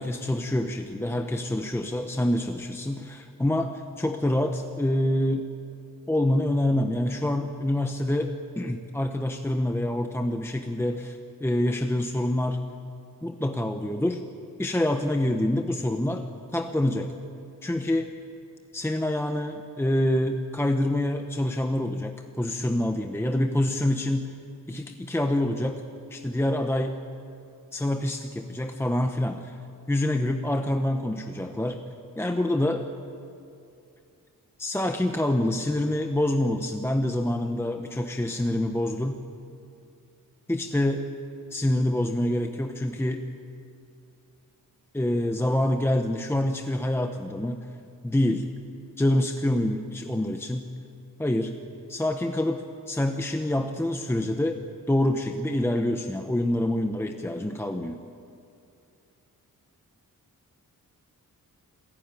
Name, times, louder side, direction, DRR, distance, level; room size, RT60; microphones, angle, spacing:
voice 1, 0.0-5.4 6.1-12.6 13.2-14.2 14.6-16.2 16.5-17.1 17.6-18.1 18.7-24.3 24.7-25.8 26.1-27.0 27.7-29.6 29.9-31.8 32.2-32.9 34.6-39.2 40.5-41.0 41.5-43.2 44.9-47.7 48.0-48.5 49.0-50.6 51.2-51.5 51.9-54.6 54.9-58.0, left 1 dB, 5° left, 5 dB, 0.8 m, -26 dB
27.5 x 15.0 x 9.0 m, 2.6 s
wide cardioid pair, 150°, 35 cm